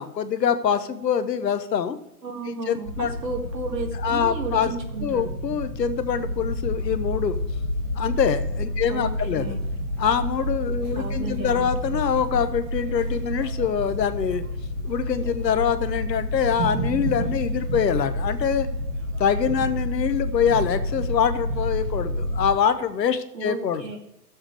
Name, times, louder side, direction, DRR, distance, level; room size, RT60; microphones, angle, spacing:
voice 1, 0.0-2.0 2.5-3.1 4.0-4.7 5.0-7.4 8.0-9.5 10.0-14.4 14.8-18.7 19.2-23.8, left 7 dB, 80° left, 10 dB, 1.1 m, -24 dB
voice 2, 2.2-5.3 8.9-9.6 11.0-11.7 23.3-24.0, right 3 dB, 85° right, 2 dB, 2.3 m, -33 dB
sound 1, 2.8-22.5, equal, 50° right, 1.5 m, -29 dB
13.5 x 7.2 x 3.4 m, 0.86 s
hypercardioid pair, 145°, 49 cm